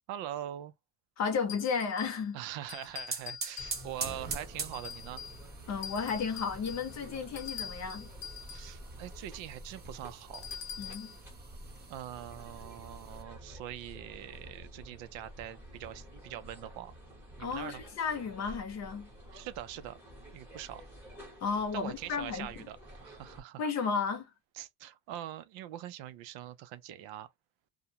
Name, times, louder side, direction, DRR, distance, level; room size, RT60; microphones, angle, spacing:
voice 1, 0.1-0.7 2.3-5.2 8.5-10.5 11.9-16.9 17.4-17.8 19.3-20.0 20.3-20.8 21.7-23.6 24.5-27.3, right 12 dB, 85° right, 0.6 m, -43 dB
voice 2, 1.2-2.4 5.7-8.1 10.8-11.1 17.4-19.1 21.4-22.7 23.6-24.3, left 5 dB, 40° left, 0.7 m, -33 dB
sound 1, 1.5-2.3 2.7-4.1 4.7-5.4 5.8-8.8 10.3-11.2, left 7 dB, 70° left, 0.8 m, -44 dB
sound 2, 2.6-13.2, right 5 dB, 25° right, 0.4 m, -45 dB
sound 3, 3.6-23.4, equal, 5° right, 0.8 m, -50 dB
2.4 x 2.1 x 2.7 m
cardioid pair, 180°, 44 cm